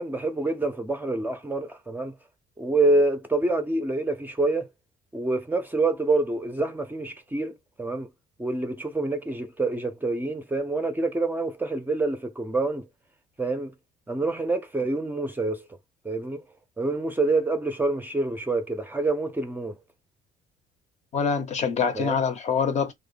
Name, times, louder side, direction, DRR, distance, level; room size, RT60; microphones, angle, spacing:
voice 1, 0.0-2.1 2.6-4.7 5.1-8.1 8.4-12.8 13.4-13.7 14.1-15.6 16.0-16.4 16.8-19.8 21.9-22.2, right 2 dB, 10° right, 0.4 m, -26 dB
voice 2, 21.1-22.9, left 6 dB, 45° left, 0.6 m, -25 dB
2.1 x 2.0 x 3.1 m
cardioid pair, 110°, 17 cm